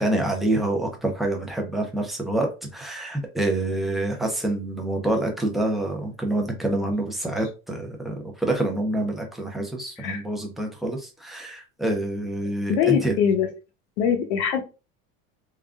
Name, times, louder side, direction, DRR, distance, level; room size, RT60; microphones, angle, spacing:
voice 1, 0.0-13.2, right 1 dB, ahead, 1 dB, 0.4 m, -27 dB
voice 2, 12.7-13.5 14.0-14.6, left 8 dB, 80° left, 5 dB, 1.0 m, -22 dB
3.6 x 2.2 x 3.4 m, 0.30 s
cardioid pair, 175°, 33 cm